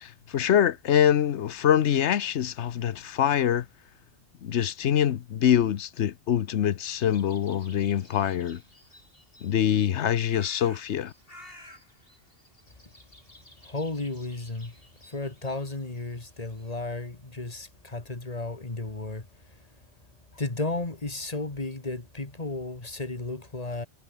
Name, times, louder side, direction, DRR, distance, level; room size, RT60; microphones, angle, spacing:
voice 1, 0.0-3.7 4.4-8.6 9.4-11.1, left 9 dB, 80° left, 1.1 m, -24 dB
sound 1, 7.0-16.7, left 1 dB, 55° left, 8.3 m, -54 dB
voice 2, 13.6-14.8 15.1-19.6 20.3-23.9, left 2 dB, 35° left, 2.4 m, -34 dB
omnidirectional pair, 1.1 m